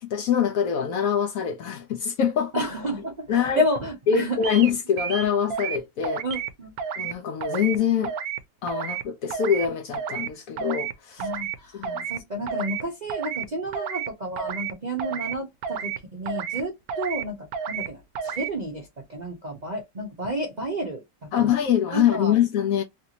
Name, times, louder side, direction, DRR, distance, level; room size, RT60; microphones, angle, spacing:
voice 1, 0.0-2.7 3.3-3.6 4.1-6.2 7.0-8.1 8.6-11.3 11.7-12.1 21.3-22.8, left 8 dB, 70° left, 0.9 m, -24 dB
voice 2, 2.5-4.4 6.2-6.7 11.2-21.5 21.9-22.3, equal, 45° right, 0.6 m, -31 dB
sound 1, 4.4-4.7 5.0-5.8 6.0-6.5 6.8-7.1 7.4-7.8 8.0-8.4 8.7-9.0 9.3-9.7 9.9-10.3 10.6-10.9 11.2-11.6 11.8-12.2 12.5-12.8 13.1-13.5 13.7-14.1 14.4-14.7 15.0-15.3 15.6-16.0 16.3-16.6 16.9-17.2 17.5-17.9 18.2-18.5, right 7 dB, 70° right, 1.0 m, -31 dB
3.3 x 2.6 x 2.8 m
omnidirectional pair, 1.8 m